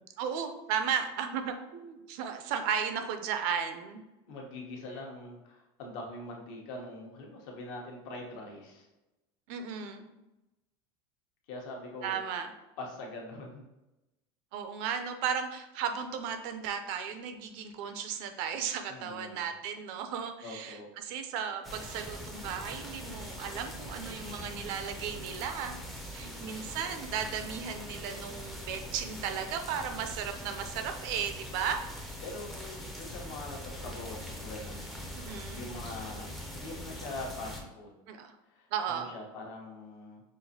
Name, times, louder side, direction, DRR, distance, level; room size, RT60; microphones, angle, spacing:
voice 1, 0.2-4.0 9.5-10.1 12.0-12.5 14.5-31.8 35.1-35.6 38.1-38.3 38.7-39.1, right 7 dB, 55° right, 7 dB, 0.4 m, -35 dB
voice 2, 4.3-8.9 11.5-12.2 12.8-13.6 18.9-19.5 20.4-20.9 26.2-26.7 32.2-35.2 35.5-37.9 38.5-40.2, left 2 dB, 60° left, 0 dB, 1.0 m, -43 dB
sound 1, 21.6-37.6, left 1 dB, ahead, 0.4 m, -42 dB
5.6 x 2.5 x 2.7 m, 1.0 s
cardioid pair, 175°, 13 cm